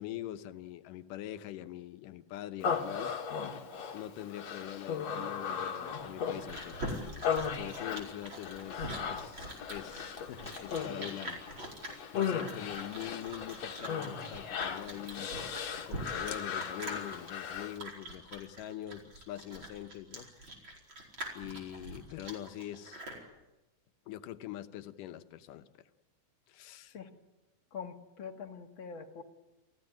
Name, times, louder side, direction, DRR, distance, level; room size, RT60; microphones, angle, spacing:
voice 1, 0.0-3.1 3.9-6.8 7.5-11.4 12.1-15.3 15.9-20.3 21.3-23.0 24.1-25.8 26.5-27.0, left 13 dB, 90° left, 10 dB, 2.6 m, -43 dB
Human voice, 2.6-17.8, left 7 dB, 60° left, 2.8 m, -37 dB
Chewing mastication, 6.0-23.2, right 1 dB, 35° right, 5.3 m, -44 dB
voice 2, 27.7-29.2, left 6 dB, 45° left, 4 dB, 2.2 m, -44 dB
28.5 x 16.5 x 9.2 m, 1.0 s
omnidirectional pair, 3.7 m